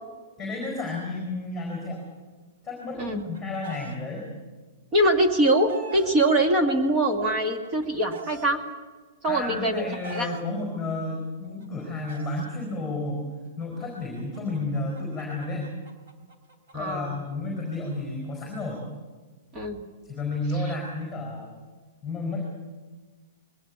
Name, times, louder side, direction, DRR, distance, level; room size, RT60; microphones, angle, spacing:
voice 1, 0.4-2.1 2.6-4.2 9.3-13.3 13.6-15.7 16.7-18.8 20.0-21.5 22.0-22.5, left 2 dB, ahead, -1 dB, 4.5 m, -31 dB
Chicken rooster, 2.8-4.0 5.0-6.1 7.1-8.5 9.4-10.4 11.4-12.5 13.6-16.9, right 4 dB, 55° right, 3.6 m, -45 dB
voice 2, 4.9-8.6 9.2-9.9 10.1-10.3 16.7-17.2 19.5-19.8, right 1 dB, 20° right, 4 dB, 1.9 m, -23 dB
22.0 x 18.0 x 8.6 m, 1.4 s
hypercardioid pair, 175°, 0 cm